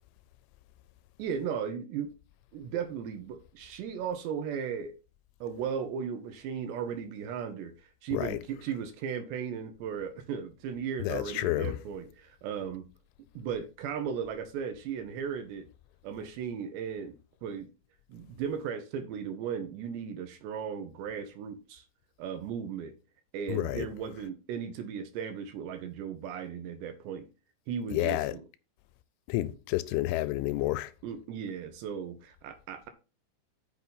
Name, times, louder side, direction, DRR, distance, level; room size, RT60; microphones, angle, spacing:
voice 1, 1.2-2.1 2.5-4.9 5.4-12.9 13.4-15.7 16.0-17.7 18.1-21.8 22.2-22.9 23.3-27.3 27.7-28.4 31.0-32.9, right 7 dB, 75° right, 2.9 m, -36 dB
voice 2, 11.0-11.8 23.5-23.9 27.9-28.3 29.3-30.9, left 17 dB, 85° left, 3.0 m, -30 dB
8.2 x 6.1 x 5.4 m
omnidirectional pair, 5.6 m